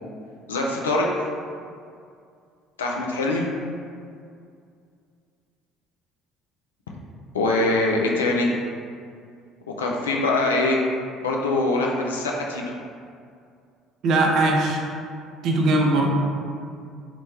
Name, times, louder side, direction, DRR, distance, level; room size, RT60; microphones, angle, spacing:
voice 1, 0.5-1.1 2.8-3.5 7.3-8.6 9.8-10.8 11.2-12.6, left 2 dB, 85° left, -1 dB, 0.3 m, -23 dB
voice 2, 14.0-14.8 15.4-16.1, right 2 dB, 60° right, 0 dB, 0.4 m, -20 dB
2.9 x 2.1 x 3.1 m, 2.3 s
hypercardioid pair, 60°, 0 cm